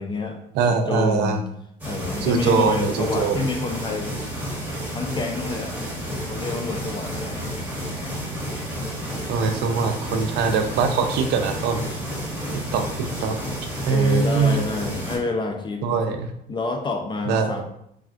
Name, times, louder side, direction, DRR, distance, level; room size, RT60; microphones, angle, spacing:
voice 1, 0.0-0.4 0.7-1.4 1.8-4.1 4.9-7.5 13.9-15.8 16.5-17.6, left 3 dB, 30° left, 4 dB, 0.4 m, -28 dB
voice 2, 0.5-1.4 2.2-3.5 9.3-11.8 12.7-13.4 13.9-14.6 15.8-16.3 17.3-17.6, right 5 dB, 80° right, 6 dB, 0.4 m, -22 dB
sound 1, 1.8-15.2, equal, 10° right, 1.2 m, -31 dB
3.4 x 2.3 x 2.4 m, 0.74 s
cardioid pair, 110°, 17 cm